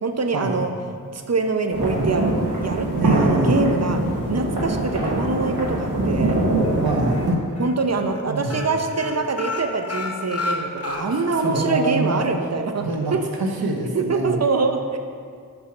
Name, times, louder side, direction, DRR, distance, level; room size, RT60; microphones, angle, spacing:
voice 1, 0.0-0.7 1.1-2.3 2.6-4.0 4.3-6.4 7.6-12.9 13.1-13.2 13.9-15.0, right 3 dB, 45° right, 6 dB, 0.7 m, -24 dB
sound 1, 1.7-7.3, right 2 dB, 60° right, 2.0 m, -23 dB
voice 2, 3.0-3.6 6.8-7.6 8.3-8.6 11.0-12.2 12.8-13.1 13.4-14.4, right 2 dB, 90° right, 2 dB, 1.0 m, -25 dB
sound 2, 6.6-7.2 7.6-7.7 8.0-8.2 8.5-11.5 11.8-11.9 12.3-12.4, left 3 dB, 40° left, 0.9 m, -30 dB
5.7 x 5.4 x 5.9 m, 2.1 s
wide cardioid pair, 60°, 36 cm